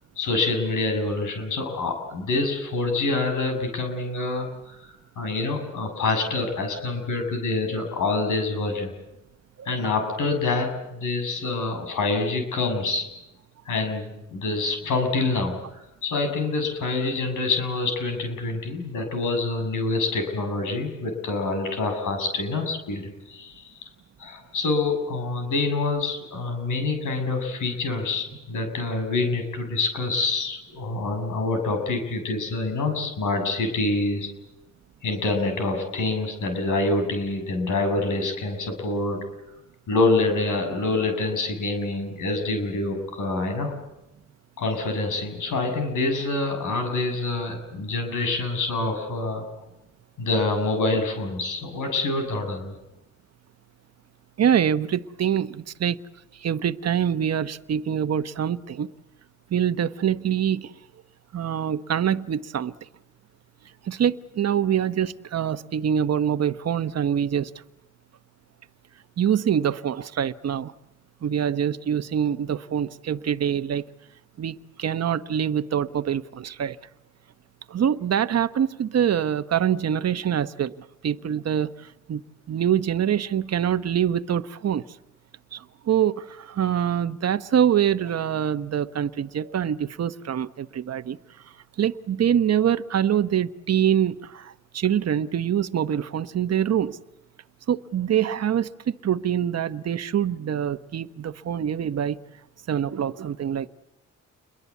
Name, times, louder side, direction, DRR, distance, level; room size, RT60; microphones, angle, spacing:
voice 1, 0.2-4.8 5.2-8.9 9.6-13.1 13.6-23.6 24.2-34.3 35.0-39.2 39.9-43.7 44.6-49.4 50.2-52.8, left 3 dB, 85° left, 6.8 m, -26 dB
voice 2, 54.4-56.0 56.3-58.9 59.5-60.7 61.3-62.7 63.8-67.5 69.2-70.7 71.2-73.8 74.4-76.8 77.7-82.2 82.5-84.8 85.5-91.2 91.8-97.0 97.7-102.2 102.7-103.7, right 9 dB, 55° right, 1.0 m, -25 dB
29.0 x 22.5 x 8.4 m
cardioid pair, 85°, 30 cm